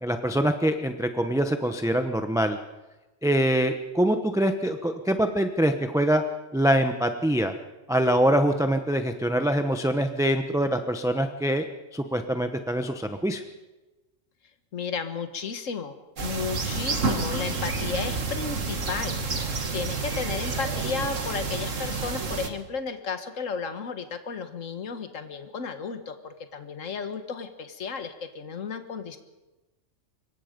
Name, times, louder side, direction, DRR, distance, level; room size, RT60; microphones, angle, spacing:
voice 1, 0.0-2.6 3.2-6.2 6.5-7.5 7.9-11.7 11.9-13.4, right 1 dB, 5° right, 7 dB, 0.9 m, -24 dB
voice 2, 14.7-15.9 16.2-29.2, left 5 dB, 80° left, 9 dB, 1.7 m, -33 dB
sound 1, 16.2-22.5, right 4 dB, 75° right, 2.1 m, -29 dB
25.5 x 22.0 x 5.3 m, 1.1 s
omnidirectional pair, 1.3 m